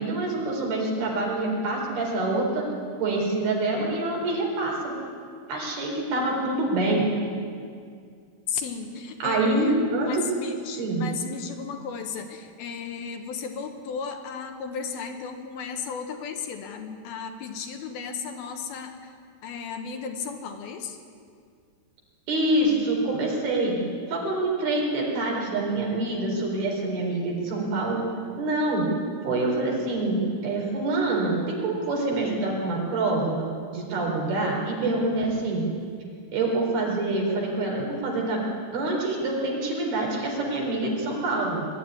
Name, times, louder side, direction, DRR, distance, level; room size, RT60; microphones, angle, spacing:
voice 1, 0.0-2.7 3.0-4.9 5.5-7.1 9.2-10.3 10.8-11.0 22.3-23.8 24.1-28.1 28.4-28.9 29.2-35.7 36.3-38.4 38.7-41.7, right 2 dB, 70° right, -1 dB, 6.0 m, -26 dB
voice 2, 8.5-19.1 19.4-21.0, left 6 dB, 75° left, 5 dB, 3.1 m, -34 dB
21.5 x 13.0 x 9.9 m, 2.2 s
omnidirectional pair, 4.6 m